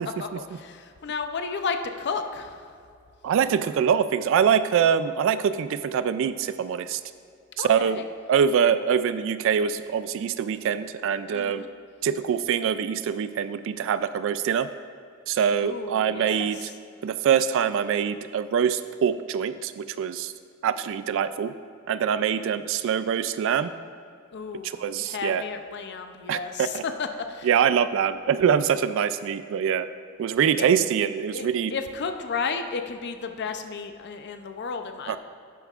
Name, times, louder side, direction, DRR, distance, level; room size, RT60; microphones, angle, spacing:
voice 1, 0.0-2.7 7.6-8.0 11.3-11.7 15.6-16.5 24.3-27.5 30.6-30.7 31.3-35.2, left 5 dB, 55° left, 7 dB, 0.5 m, -33 dB
voice 2, 3.2-7.0 7.6-8.0 8.3-11.6 12.0-14.7 15.3-16.7 17.0-20.3 20.6-21.5 21.9-23.7 24.6-25.4 26.3-26.8 27.4-29.9 30.2-31.7 35.1-35.2, right 7 dB, 65° right, 13 dB, 0.3 m, -24 dB
11.0 x 8.9 x 2.4 m, 2.3 s
head